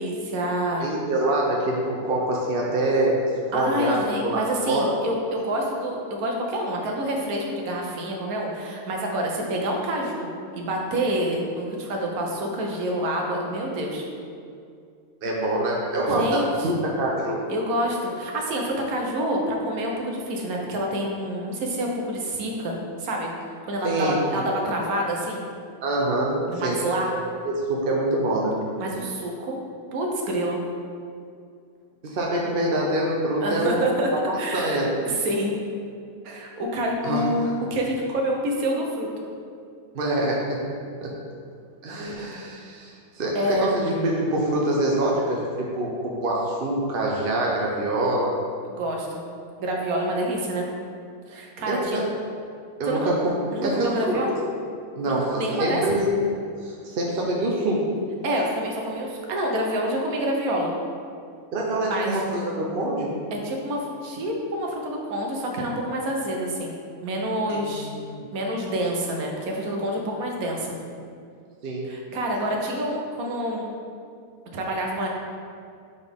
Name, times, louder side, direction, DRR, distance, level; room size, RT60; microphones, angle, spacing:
voice 1, 0.0-0.9 3.5-14.0 16.1-16.7 17.5-23.3 23.6-25.4 26.5-27.1 28.8-29.6 29.9-30.6 33.4-34.1 34.4-35.6 36.2-39.2 43.3-43.7 48.7-49.2 49.6-50.7 51.3-52.1 52.9-53.1 53.5-54.4 55.1-55.8 58.2-60.7 61.9-62.2 63.3-67.9 68.3-70.7 71.9-73.6 74.5-75.1, right 1 dB, 70° right, 0 dB, 1.3 m, -27 dB
voice 2, 0.8-3.2 3.5-4.4 4.7-4.8 15.2-17.4 23.8-24.7 25.8-26.8 27.4-28.5 32.0-33.9 34.5-35.0 37.0-37.2 39.9-40.6 41.0-41.1 41.8-48.3 51.7-52.0 52.8-53.9 55.0-56.1 56.6-57.8 61.5-63.1 67.5-68.2 71.6-71.9, right 1 dB, 50° right, -3 dB, 0.7 m, -25 dB
7.0 x 4.0 x 3.5 m, 2.3 s
omnidirectional pair, 1.6 m